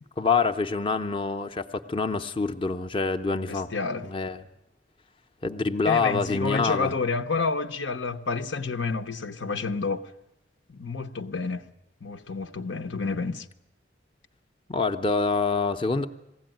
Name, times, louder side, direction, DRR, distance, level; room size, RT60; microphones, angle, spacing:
voice 1, 0.2-3.7 4.0-4.4 5.4-6.9 14.7-16.1, left 4 dB, 30° left, 0.7 m, -26 dB
voice 2, 3.5-4.1 5.9-10.1 10.7-11.7 12.0-13.5, left 4 dB, 90° left, 0.9 m, -29 dB
20.5 x 16.0 x 9.1 m
head